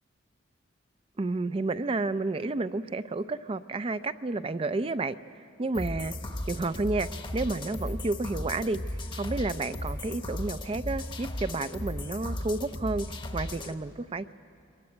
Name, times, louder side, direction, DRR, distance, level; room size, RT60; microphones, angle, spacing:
voice 1, 1.2-5.2 5.6-6.1 6.5-8.8 9.1-13.1 13.3-14.3, right 3 dB, 30° right, 13 dB, 0.4 m, -31 dB
sound 1, 5.7-13.7, left 1 dB, 25° left, 0.9 m, -36 dB
23.5 x 15.0 x 9.7 m, 2.6 s
head